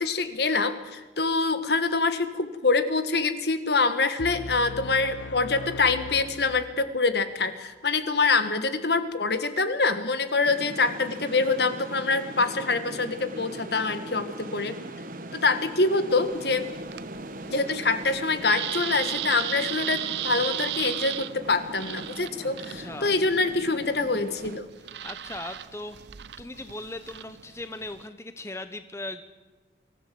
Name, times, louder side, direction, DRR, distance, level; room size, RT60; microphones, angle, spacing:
voice 1, 0.0-14.8 15.3-16.7 17.5-24.7, left 3 dB, 60° left, 10 dB, 1.5 m, -25 dB
sound 1, 4.2-7.1, left 3 dB, 80° left, 0.9 m, -39 dB
sound 2, 10.4-24.6, right 1 dB, 45° right, 1.4 m, -40 dB
sound 3, 16.1-28.1, right 12 dB, 65° right, 0.7 m, -36 dB
voice 2, 22.8-23.2 24.8-26.0 26.4-29.2, left 2 dB, 15° left, 9 dB, 0.8 m, -38 dB
24.0 x 14.5 x 7.7 m, 1.3 s
head